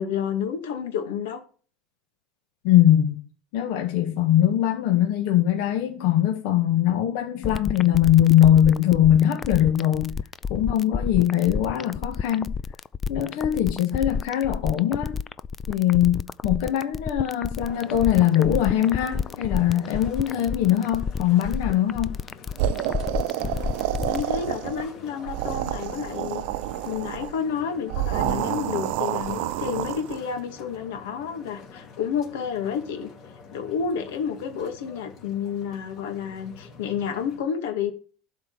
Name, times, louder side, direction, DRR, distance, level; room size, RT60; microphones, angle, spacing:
voice 1, 0.0-1.4 24.1-26.4 26.8-33.1 33.5-37.9, left 7 dB, 90° left, 2.2 m, -30 dB
voice 2, 2.6-3.2 3.5-10.2 10.5-12.5 13.1-15.2 15.7-22.1, left 11 dB, 65° left, 1.6 m, -21 dB
sound 1, 7.4-24.2, left 5 dB, 20° left, 0.4 m, -30 dB
sound 2, 17.6-37.4, left 5 dB, 45° left, 2.9 m, -46 dB
sound 3, 22.6-24.9 25.2-27.3 27.9-30.2, right 14 dB, 65° right, 0.6 m, -28 dB
12.0 x 4.6 x 7.2 m
supercardioid pair, 150°, 0 cm